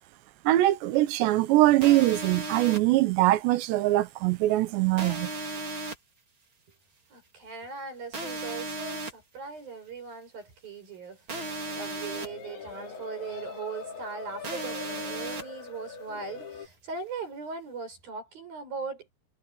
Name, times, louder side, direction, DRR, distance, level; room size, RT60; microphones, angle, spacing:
voice 1, 0.4-5.3, right 16 dB, 75° right, 3.1 m, -22 dB
sound 1, 1.8-2.8 5.0-5.9 8.1-9.1 11.3-12.3 14.4-15.4, right 2 dB, 30° right, 3.7 m, -35 dB
voice 2, 7.1-11.2 11.7-19.1, right 5 dB, 50° right, 8.8 m, -39 dB
sound 2, 11.3-16.7, left 5 dB, 75° left, 6.3 m, -42 dB
omnidirectional pair, 5.3 m